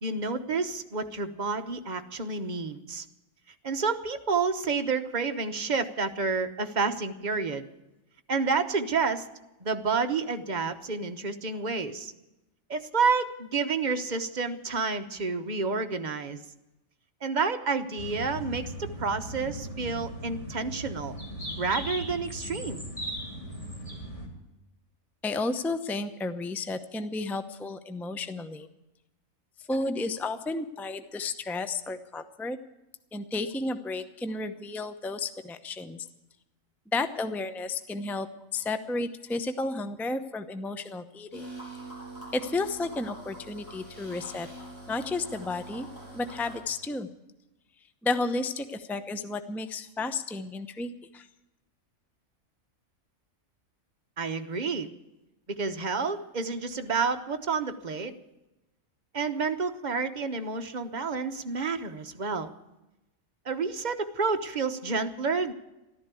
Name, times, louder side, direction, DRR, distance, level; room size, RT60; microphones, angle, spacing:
voice 1, 0.0-3.0 3.6-7.6 8.3-9.2 9.6-12.1 12.7-16.4 17.2-21.2 21.6-22.9 54.2-54.9 55.5-58.1 59.1-62.5 63.4-65.5, right 4 dB, 35° right, 7 dB, 1.1 m, -29 dB
sound 1, 18.0-24.3, equal, 25° left, 3.5 m, -38 dB
voice 2, 25.2-28.7 29.7-32.6 33.1-36.1 36.9-38.3 38.5-41.5 42.3-44.5 44.9-45.9 46.1-47.1 48.0-51.3, left 3 dB, ahead, 10 dB, 0.6 m, -32 dB
sound 2, 41.3-46.6, right 2 dB, 60° left, 8.4 m, -44 dB
14.0 x 12.5 x 8.3 m, 0.96 s
omnidirectional pair, 1.4 m